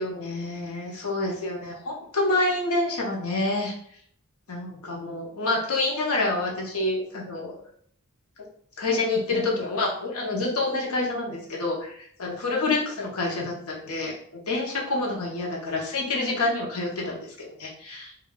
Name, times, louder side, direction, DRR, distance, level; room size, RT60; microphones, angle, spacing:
voice 1, 0.0-3.7 4.5-7.6 8.8-18.1, left 2 dB, 80° left, -1 dB, 0.8 m, -28 dB
3.7 x 2.3 x 2.2 m, 0.63 s
head